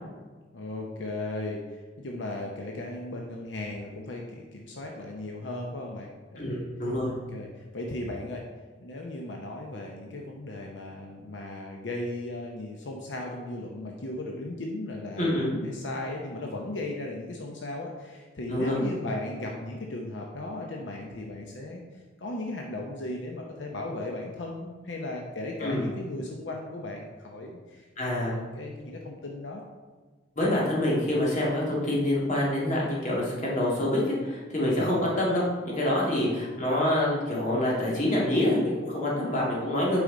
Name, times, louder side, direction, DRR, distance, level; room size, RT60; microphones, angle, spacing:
voice 1, 0.5-6.7 7.3-8.5 8.8-29.6 34.7-34.9 36.2-36.3, left 2 dB, 80° left, 0 dB, 0.8 m, -36 dB
voice 2, 6.4-7.1 15.2-15.5 18.5-18.8 25.6-25.9 28.0-28.3 30.4-40.0, left 1 dB, 40° left, -5 dB, 2.1 m, -26 dB
8.3 x 4.9 x 3.8 m, 1.4 s
head